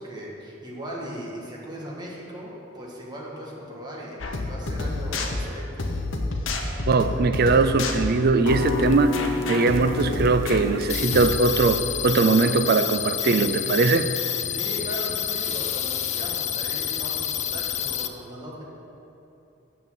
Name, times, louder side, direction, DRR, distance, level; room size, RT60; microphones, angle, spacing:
voice 1, 0.0-5.9 14.5-18.6, equal, 20° right, -4 dB, 1.5 m, -38 dB
sound 1, 4.2-11.4, left 2 dB, 70° left, 0.8 m, -28 dB
voice 2, 6.9-9.1 9.5-14.1, right 3 dB, 55° right, 10 dB, 0.4 m, -20 dB
sound 2, 10.9-18.1, left 10 dB, 35° left, 0.4 m, -28 dB
7.0 x 6.0 x 7.4 m, 2.9 s
head